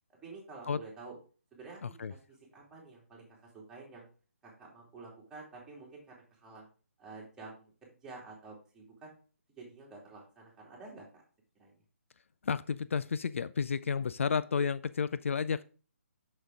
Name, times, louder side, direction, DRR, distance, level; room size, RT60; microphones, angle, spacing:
voice 1, 0.2-1.2 1.5-4.1 4.4-6.7 7.0-9.1 9.6-11.2 11.6-11.7, right 3 dB, 10° right, -4 dB, 2.7 m, -50 dB
voice 2, 1.8-2.1 12.4-15.6, left 6 dB, 60° left, 15 dB, 0.4 m, -31 dB
6.4 x 6.4 x 3.5 m, 0.37 s
figure-of-eight pair, 145°, 8 cm